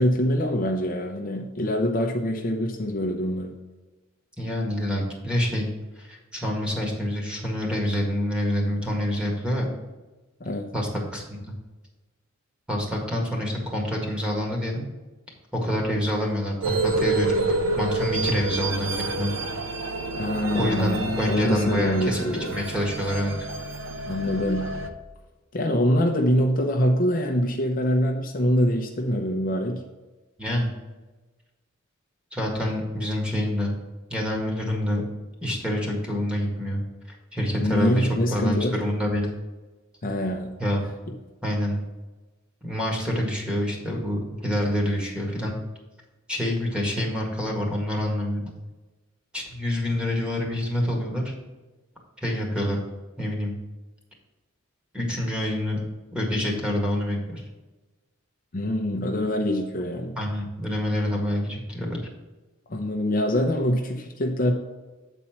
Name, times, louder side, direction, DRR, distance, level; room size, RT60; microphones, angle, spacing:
voice 1, 0.0-3.5 10.4-10.7 20.1-22.5 24.0-24.7 25.5-29.8 37.6-38.8 40.0-40.5 41.1-41.2 58.5-60.1 62.7-64.5, equal, 45° left, 2 dB, 0.7 m, -24 dB
voice 2, 4.4-5.7 5.9-9.7 10.7-11.2 12.7-14.9 15.5-17.5 17.7-19.3 20.5-23.3 30.4-30.7 32.3-33.7 34.1-35.0 35.4-36.8 37.3-39.3 40.6-40.8 41.4-41.8 42.6-45.5 46.3-48.5 49.3-51.3 52.2-52.8 53.2-53.5 54.9-55.8 56.1-57.4 60.1-62.0, left 1 dB, 5° right, -1 dB, 1.7 m, -27 dB
sound 1, 16.6-24.9, right 2 dB, 65° right, 0.7 m, -28 dB
8.1 x 4.2 x 5.8 m, 1.2 s
head